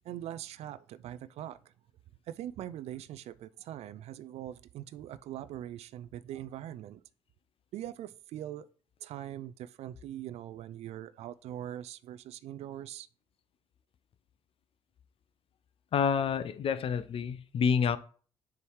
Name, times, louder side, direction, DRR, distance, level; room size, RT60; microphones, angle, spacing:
voice 1, 0.0-1.7 2.3-7.0 7.7-8.7 9.0-13.1, right 12 dB, 55° right, 0.4 m, -42 dB
voice 2, 15.9-18.0, left 6 dB, 45° left, 0.5 m, -28 dB
6.9 x 3.1 x 4.7 m
hypercardioid pair, 50°, 13 cm